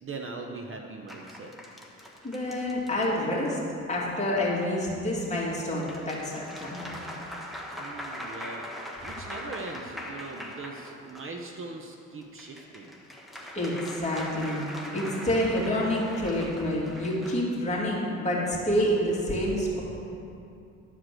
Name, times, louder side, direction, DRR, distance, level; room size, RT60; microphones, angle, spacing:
voice 1, 0.0-1.5 7.8-8.7 9.0-12.9, right 3 dB, 45° right, 3 dB, 0.9 m, -40 dB
sound 1, 1.1-3.5 5.4-11.4 12.2-17.6, equal, ahead, 1.3 m, -41 dB
voice 2, 2.2-3.6 3.9-6.9 13.5-19.8, equal, 20° left, -5 dB, 2.6 m, -28 dB
11.0 x 4.9 x 7.7 m, 2.6 s
cardioid pair, 90°, 30 cm